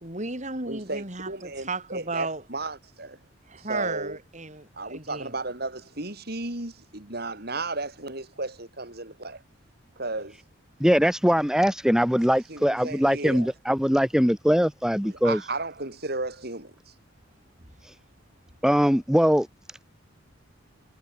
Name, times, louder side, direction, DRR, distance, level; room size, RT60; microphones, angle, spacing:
voice 1, 0.0-2.4 3.5-5.3, right 3 dB, 35° right, 5.8 m, -34 dB
voice 2, 0.7-3.2 3.5-4.2 4.7-9.4 10.0-10.4 12.5-13.5 15.0-16.9, right 2 dB, 55° right, 6.9 m, -34 dB
voice 3, 10.8-15.4 18.6-19.5, equal, 5° right, 2.4 m, -21 dB
head